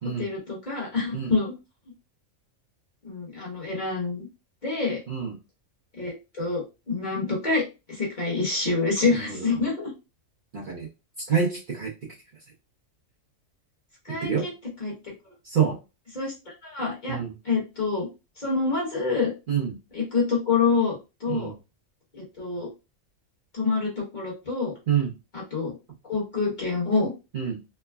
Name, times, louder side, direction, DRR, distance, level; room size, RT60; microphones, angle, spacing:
voice 1, 0.2-1.5 3.0-4.3 4.6-5.0 6.0-7.6 7.9-9.9 14.1-14.5 14.8-14.9 16.1-16.3 16.6-17.2 17.4-18.1 18.4-19.3 19.9-21.5 22.1-22.7 23.5-24.7 25.3-25.7 26.1-27.1, left 4 dB, 35° left, -4 dB, 1.2 m, -26 dB
voice 2, 5.1-5.4 9.1-9.5 10.5-10.9 11.3-11.9 14.1-14.5 15.4-15.8 17.1-17.3 19.5-19.8 21.3-21.6 24.9-25.1 27.3-27.6, right 7 dB, 45° right, -5 dB, 0.7 m, -27 dB
3.3 x 2.1 x 2.2 m, 0.27 s
omnidirectional pair, 1.4 m